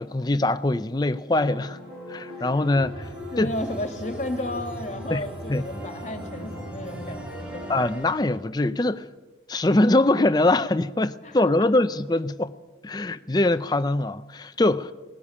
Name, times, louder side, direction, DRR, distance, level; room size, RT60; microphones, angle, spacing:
voice 1, 0.0-1.8 2.1-3.1 3.4-3.5 5.1-5.2 5.5-5.6 7.7-9.0 9.5-12.5 12.8-14.9, left 2 dB, 20° left, 0.5 m, -23 dB
sound 1, 1.3-7.9, left 1 dB, 25° right, 6.1 m, -41 dB
sound 2, 2.8-8.4, equal, 5° right, 2.5 m, -39 dB
voice 2, 3.3-7.7 11.2-11.7, left 1 dB, 40° left, 2.1 m, -33 dB
19.0 x 13.5 x 9.9 m
head